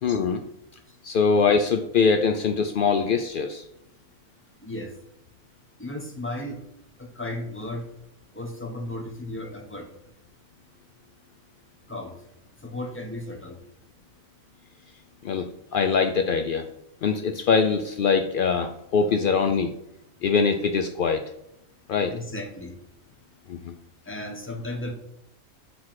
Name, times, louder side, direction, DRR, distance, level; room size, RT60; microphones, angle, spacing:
voice 1, 0.0-0.4 1.0-3.6 15.2-16.7 17.0-19.7 20.2-21.3 21.9-22.1 23.5-23.7, left 5 dB, 75° left, 7 dB, 0.5 m, -23 dB
voice 2, 4.6-4.9 5.8-6.6 7.0-7.8 8.3-9.9 11.9-12.2 12.6-13.6 22.1-22.7 24.1-24.9, left 1 dB, 10° left, 3 dB, 1.0 m, -34 dB
6.0 x 4.8 x 5.8 m, 0.81 s
omnidirectional pair, 1.5 m